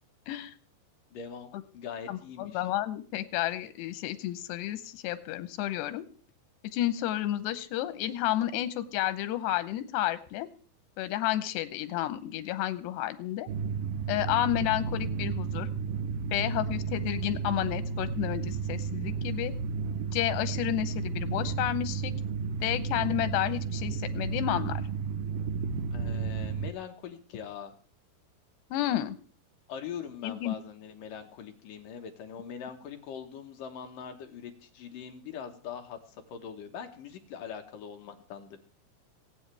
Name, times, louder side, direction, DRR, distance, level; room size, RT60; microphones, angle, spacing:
voice 1, 1.1-2.7 25.9-27.7 29.7-38.6, left 7 dB, 65° left, 5 dB, 2.6 m, -42 dB
voice 2, 2.1-6.0 6.7-10.5 11.0-13.5 14.1-15.7 16.3-19.5 20.1-22.1 22.6-24.8 28.7-29.2 30.2-30.5, left 13 dB, 90° left, 13 dB, 3.1 m, -31 dB
sound 1, 13.5-26.7, right 5 dB, 80° right, 2.0 m, -33 dB
25.0 x 8.6 x 3.4 m, 0.43 s
omnidirectional pair, 4.7 m